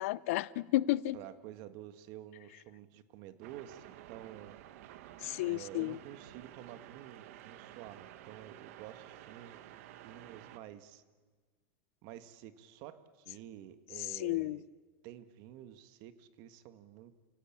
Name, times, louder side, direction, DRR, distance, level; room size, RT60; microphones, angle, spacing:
voice 1, 0.0-1.2 5.2-6.0 14.0-14.6, left 17 dB, 70° left, 0.6 m, -32 dB
voice 2, 1.1-4.6 5.5-9.6 10.0-11.0 12.0-14.6 15.0-17.1, right 12 dB, 55° right, 1.7 m, -50 dB
sound 1, 3.4-10.6, right 13 dB, 70° right, 1.5 m, -52 dB
29.0 x 17.5 x 8.7 m
supercardioid pair, 130°, 8 cm